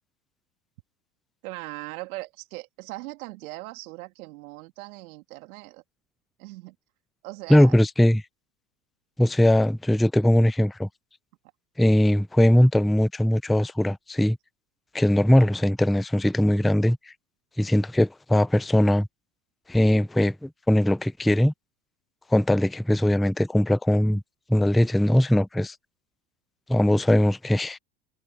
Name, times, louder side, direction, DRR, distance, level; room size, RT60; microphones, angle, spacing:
voice 1, 1.4-5.8 6.4-6.7 7.2-7.8, right 21 dB, 65° right, 3.1 m, -39 dB
voice 2, 7.5-8.2 9.2-10.9 11.8-14.4 14.9-17.0 17.6-19.1 19.7-21.5 22.3-24.2 24.5-25.7 26.7-27.8, left 1 dB, ahead, 0.5 m, -20 dB
hypercardioid pair, 85°, 46 cm